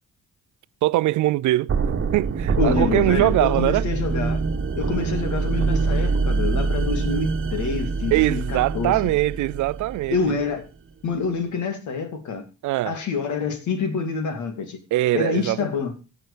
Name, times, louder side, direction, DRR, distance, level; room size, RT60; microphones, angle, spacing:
voice 1, 0.8-1.7 2.1-3.8 8.1-10.3 12.6-13.0 14.9-15.7, right 17 dB, 75° right, 0.5 m, -22 dB
sound 1, 1.7-10.5, right 4 dB, 45° right, 1.3 m, -25 dB
voice 2, 2.6-4.4 4.7-9.0 10.1-10.7 11.0-12.4 12.8-14.8 15.1-15.9, left 5 dB, 70° left, 2.8 m, -27 dB
16.0 x 5.9 x 5.1 m
cardioid pair, 90°, 30 cm